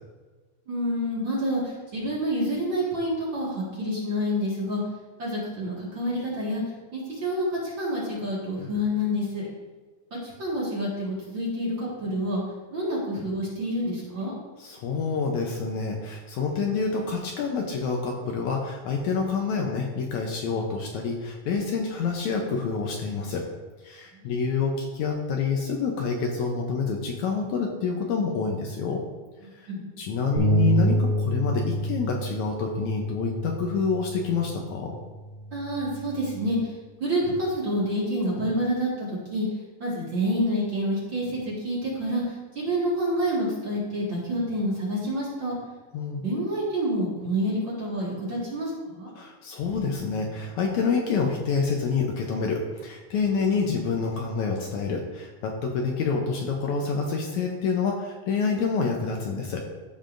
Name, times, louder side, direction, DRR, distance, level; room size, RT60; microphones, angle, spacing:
voice 1, 0.7-4.8 5.2-6.6 6.9-9.4 10.2-12.4 12.7-14.3 24.1-24.3 29.7-29.9 35.5-36.7 37.0-39.4 39.8-42.2 42.6-45.6 46.2-49.1, equal, 40° right, -6 dB, 2.1 m, -28 dB
voice 2, 14.6-23.5 23.8-29.0 29.5-29.7 30.0-34.9 45.9-46.2 49.2-59.7, left 5 dB, 75° left, 1 dB, 1.9 m, -27 dB
sound 1, 30.4-36.6, right 1 dB, 90° right, 4.5 m, -28 dB
14.0 x 5.4 x 2.6 m, 1.3 s
omnidirectional pair, 3.8 m